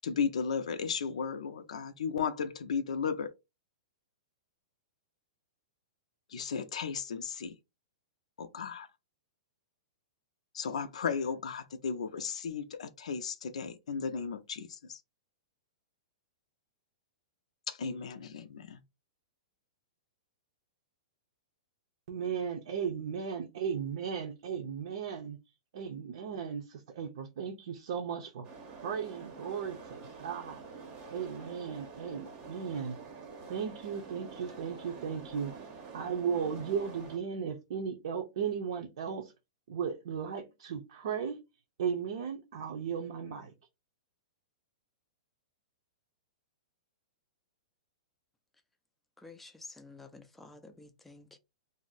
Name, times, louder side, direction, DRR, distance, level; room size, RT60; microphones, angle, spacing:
voice 1, 0.0-3.3 6.3-7.5 8.4-8.9 10.5-15.0 17.7-18.8, left 6 dB, 85° left, 0.4 m, -35 dB
voice 2, 22.1-25.4 25.7-30.6 31.1-33.0 33.5-35.7 35.9-39.3 39.7-41.4 41.8-43.5, right 7 dB, 65° right, 0.6 m, -36 dB
sound 1, 28.4-37.2, right 4 dB, 30° right, 0.7 m, -47 dB
voice 3, 49.2-51.4, left 3 dB, 5° left, 0.4 m, -51 dB
2.6 x 2.0 x 3.9 m
hypercardioid pair, 155°, 3 cm